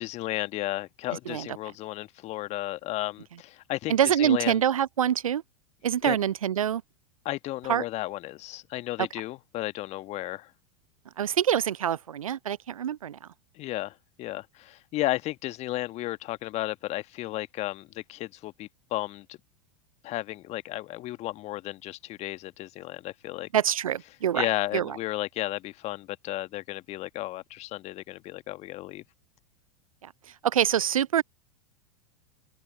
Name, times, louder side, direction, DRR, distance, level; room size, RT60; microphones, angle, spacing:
voice 1, 0.0-4.6 6.0-6.2 7.2-10.5 13.5-19.4 20.0-23.5 24.3-29.0, left 16 dB, 40° left, 1.5 m, -33 dB
voice 2, 3.9-5.4 5.8-6.8 7.7-7.8 11.2-13.2 23.5-24.5 24.7-25.0 30.0-30.1 30.4-31.2, right 9 dB, 80° right, 0.4 m, -25 dB
open air
figure-of-eight pair, 90°, 17 cm